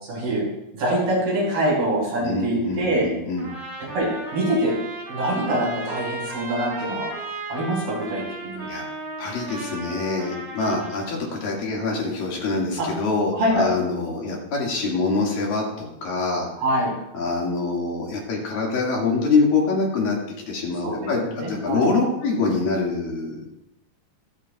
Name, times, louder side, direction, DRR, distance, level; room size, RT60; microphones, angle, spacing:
voice 1, 0.1-0.5 0.7-3.1 3.9-4.7 5.1-7.1 7.5-8.7 12.8-12.9 13.3-13.7 16.6-16.9 20.8-21.9, right 1 dB, 80° right, -4 dB, 7.2 m, -24 dB
voice 2, 2.2-3.5 8.7-8.8 9.2-16.5 17.1-20.2 20.5-23.6, left 3 dB, 65° left, -2 dB, 3.7 m, -25 dB
Trumpet, 3.4-11.1, right 2 dB, 40° right, 4.4 m, -35 dB
24.5 x 8.3 x 2.4 m, 0.86 s
omnidirectional pair, 4.4 m